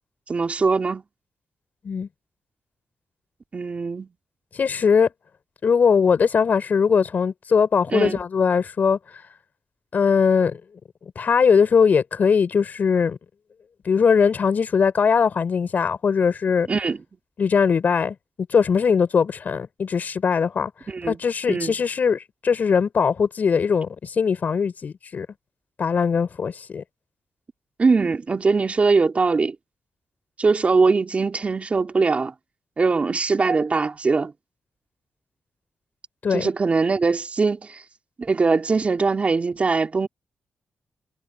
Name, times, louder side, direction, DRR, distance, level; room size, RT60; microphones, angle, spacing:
voice 1, 0.3-1.0 3.5-4.1 7.9-8.2 16.7-17.0 20.9-21.2 21.5-21.7 27.8-29.5 30.4-32.3 32.8-34.3 36.3-37.8 38.2-40.1, right 4 dB, 40° right, 3.4 m, -21 dB
voice 2, 4.5-5.1 5.6-9.0 9.9-10.6 11.2-13.2 13.8-16.7 17.4-18.1 18.5-20.7 21.1-25.3 25.8-26.8 36.2-36.5, left 6 dB, 60° left, 6.2 m, -20 dB
cardioid pair, 70°, 3 cm